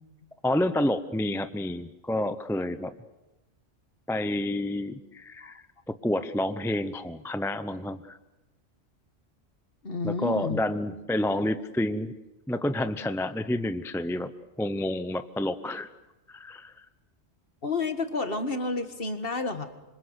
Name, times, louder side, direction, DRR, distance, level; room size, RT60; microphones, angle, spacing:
voice 1, 0.4-2.9 4.1-8.2 10.0-12.1 12.5-14.3 14.6-15.9 16.3-16.9, left 1 dB, 5° left, 12 dB, 0.6 m, -29 dB
voice 2, 9.8-10.6 17.6-19.7, left 3 dB, 50° left, 8 dB, 2.0 m, -30 dB
26.5 x 25.5 x 8.2 m, 1.0 s
omnidirectional pair, 1.3 m